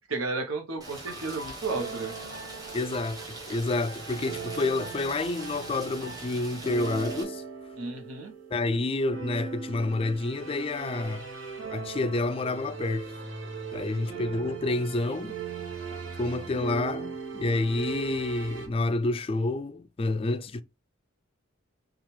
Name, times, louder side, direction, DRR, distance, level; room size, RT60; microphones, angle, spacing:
voice 1, 0.1-2.1 7.8-8.3 13.9-14.3, right 3 dB, 85° right, 1.0 m, -33 dB
Rain, 0.8-7.2, right 2 dB, 20° right, 1.2 m, -43 dB
Calming Background Music Orchestra, 0.8-18.7, right 5 dB, 65° right, 1.4 m, -39 dB
voice 2, 2.7-3.2 3.5-7.4 8.5-11.3 11.7-13.1 13.7-15.4 16.2-20.6, left 2 dB, 25° left, 0.3 m, -29 dB
5.7 x 2.4 x 3.2 m
head